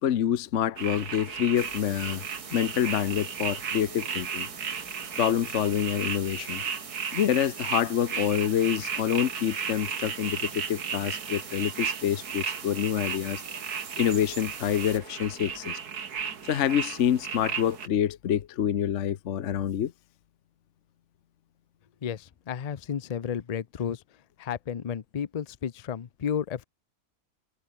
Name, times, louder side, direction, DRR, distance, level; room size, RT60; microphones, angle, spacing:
voice 1, 0.0-2.2 2.5-4.5 5.2-6.6 7.1-13.4 14.0-15.8 16.4-19.9, left 10 dB, 55° left, 1.0 m, -27 dB
sound 1, 0.8-17.9, right 6 dB, 75° right, 2.2 m, -35 dB
sound 2, 1.6-15.0, right 5 dB, 35° right, 0.5 m, -44 dB
voice 2, 22.0-24.0 24.4-26.6, left 8 dB, 70° left, 0.3 m, -32 dB
omnidirectional pair, 1.7 m